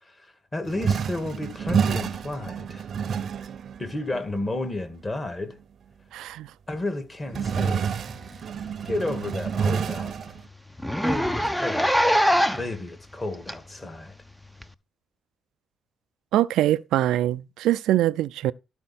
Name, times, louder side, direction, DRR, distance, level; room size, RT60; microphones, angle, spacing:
voice 1, 0.0-2.9 3.8-5.6 6.7-8.0 8.9-10.1 11.0-12.0 12.6-14.1, left 2 dB, 25° left, 2.0 m, -32 dB
sound 1, 0.7-4.5 5.5-5.6 7.3-10.4, right 6 dB, 55° right, 0.7 m, -28 dB
voice 2, 6.1-6.5 16.3-18.5, right 13 dB, 85° right, 0.4 m, -23 dB
Zipper (clothing), 8.1-8.3 8.7-8.8 9.2-9.3 9.6-9.7 10.0-10.1 10.8-12.8 13.5-13.6 14.6-14.7, equal, 5° left, 0.6 m, -23 dB
12.5 x 4.3 x 4.3 m
cardioid pair, 90°, 0 cm